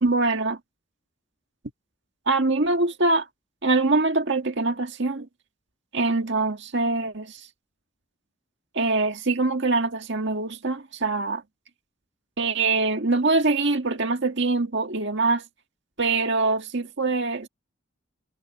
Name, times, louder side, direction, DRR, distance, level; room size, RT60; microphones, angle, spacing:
voice 1, 0.0-0.6 2.3-3.3 3.6-5.3 5.9-7.5 8.7-11.4 12.4-15.4 16.0-17.5, right 3 dB, 60° right, 1.8 m, -23 dB
head